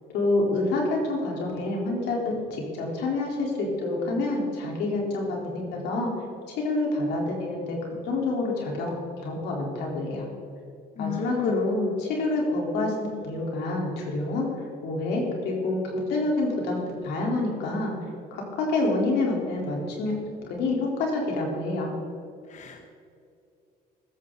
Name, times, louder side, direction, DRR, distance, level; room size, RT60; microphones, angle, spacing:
voice 1, 0.1-6.1 6.6-7.8 8.0-10.3 11.0-17.9 18.3-20.1 20.6-22.0, left 2 dB, 85° left, -2 dB, 4.1 m, -27 dB
voice 2, 11.0-11.6 22.5-22.9, left 8 dB, 45° left, 5 dB, 1.1 m, -34 dB
16.0 x 13.0 x 4.1 m, 2.4 s
cardioid pair, 110°, 17 cm